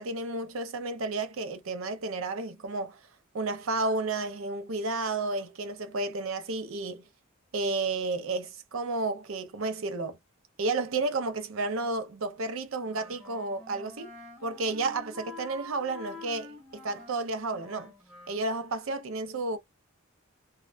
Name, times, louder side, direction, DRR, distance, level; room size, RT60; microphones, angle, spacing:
voice 1, 0.0-3.0 3.3-7.0 7.5-10.2 10.6-14.1 14.4-17.9 18.3-19.6, right 3 dB, 65° right, 0.6 m, -32 dB
Wind instrument woodwind instrument, 12.8-18.5, left 2 dB, ahead, 0.9 m, -47 dB
2.4 x 2.1 x 2.4 m
head